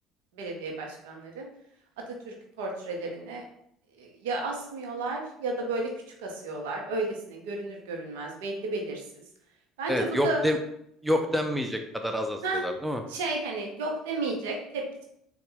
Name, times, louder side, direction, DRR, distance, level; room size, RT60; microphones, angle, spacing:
voice 1, 0.3-1.5 2.1-3.4 4.0-5.9 6.2-9.0 9.8-10.4 12.4-12.6 13.1-15.0, right 3 dB, 80° right, 1 dB, 0.8 m, -33 dB
voice 2, 9.9-10.6 11.0-13.0, left 1 dB, 5° right, 4 dB, 0.5 m, -27 dB
3.9 x 2.4 x 3.8 m, 0.73 s
hypercardioid pair, 65°, 0 cm